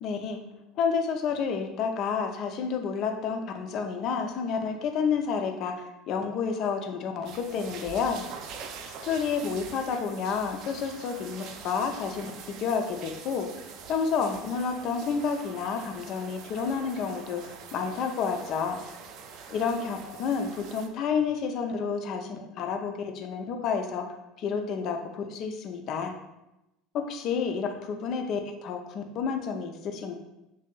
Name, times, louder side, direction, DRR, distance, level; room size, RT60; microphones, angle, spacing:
voice 1, 0.0-0.4 0.8-8.2 9.0-13.5 13.9-18.8 19.5-26.1 27.1-30.1, left 6 dB, 50° left, 5 dB, 0.5 m, -30 dB
sound 1, 7.2-20.9, right 6 dB, 55° right, 0.4 m, -44 dB
3.3 x 2.7 x 3.8 m, 0.94 s
figure-of-eight pair, 70°, 0 cm